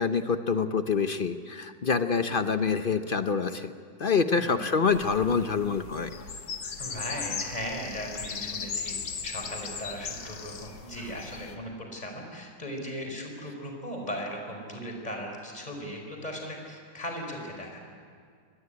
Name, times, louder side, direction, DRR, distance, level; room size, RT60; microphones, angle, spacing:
voice 1, 0.0-3.7 4.0-6.1, left 5 dB, 50° left, 9 dB, 0.6 m, -26 dB
voice 2, 4.4-4.7 6.8-9.0 9.2-17.8, equal, 20° left, 2 dB, 4.5 m, -37 dB
sound 1, 4.9-11.5, left 6 dB, 75° left, 2.0 m, -38 dB
23.5 x 19.0 x 9.8 m, 2.1 s
omnidirectional pair, 1.9 m